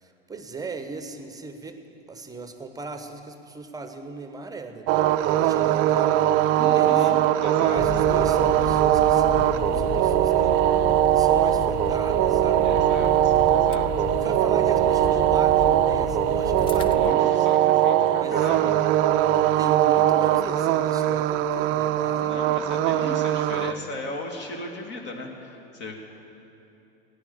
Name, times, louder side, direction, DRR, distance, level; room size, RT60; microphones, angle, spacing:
voice 1, 0.0-6.3 6.6-7.1 7.6-10.6 11.1-12.8 14.0-17.4 18.1-18.5 19.6-22.4, right 3 dB, 10° right, 8 dB, 1.1 m, -37 dB
sound 1, 4.9-23.7, right 13 dB, 40° right, 0.5 m, -21 dB
voice 2, 6.6-7.8 12.6-13.9 14.2-14.3 17.0-18.8 22.2-26.0, left 2 dB, 40° left, 2 dB, 2.3 m, -36 dB
sound 2, 7.7-17.1, left 9 dB, 20° left, 0.3 m, -33 dB
15.5 x 10.5 x 7.1 m, 2.8 s
figure-of-eight pair, 85°, 30 cm